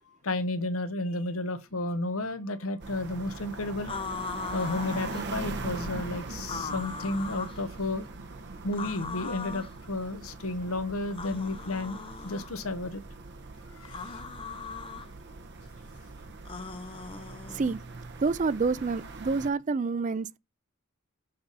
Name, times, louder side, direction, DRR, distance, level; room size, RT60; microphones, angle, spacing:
voice 1, 0.2-3.9 4.5-8.1 8.6-12.0 12.2-13.0 13.7-14.2 16.6-16.7, left 2 dB, 70° left, 1.0 m, -32 dB
sound 1, 2.8-19.5, right 3 dB, 50° right, 1.0 m, -41 dB
sound 2, 3.9-5.3 6.4-7.6 8.7-9.7 11.1-12.5 13.8-15.1 16.4-17.8, left 5 dB, 25° left, 0.5 m, -39 dB
voice 2, 17.5-17.8 18.2-20.4, right 4 dB, 35° right, 0.4 m, -28 dB
6.8 x 4.1 x 5.4 m
head